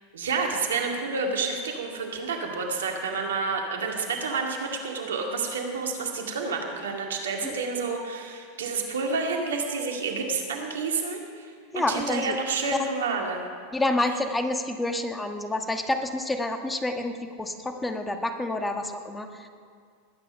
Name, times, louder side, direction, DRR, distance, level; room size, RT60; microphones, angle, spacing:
voice 1, 0.1-11.5 11.7-13.5, right 4 dB, 80° right, 2 dB, 2.2 m, -29 dB
voice 2, 11.7-12.4 12.8-12.9 13.7-19.5, left 2 dB, 10° left, 6 dB, 1.4 m, -28 dB
20.5 x 9.1 x 5.5 m, 2.1 s
hypercardioid pair, 95°, 0 cm